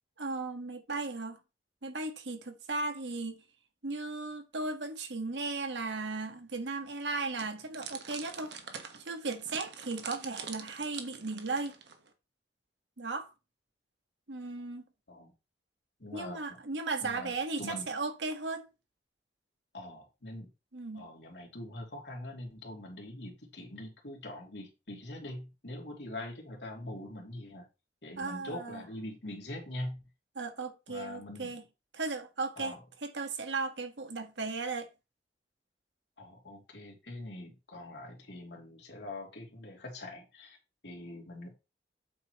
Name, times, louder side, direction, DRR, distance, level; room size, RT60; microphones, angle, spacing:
voice 1, 0.2-1.4 1.8-3.4 3.8-8.5 9.0-11.7 13.0-13.3 14.3-14.8 16.1-18.7 20.7-21.1 28.2-28.8 30.3-31.6 31.9-32.7 33.0-34.9, right 3 dB, 85° right, 1.5 m, -36 dB
sound 1, 7.4-12.1, right 6 dB, 70° right, 1.4 m, -45 dB
voice 2, 16.0-16.6 17.0-17.9 19.7-20.5 20.9-27.6 28.0-30.0 30.9-31.5 32.6-32.8 36.2-40.6 40.8-41.5, left 1 dB, 75° left, 3.0 m, -43 dB
8.7 x 6.9 x 3.1 m
head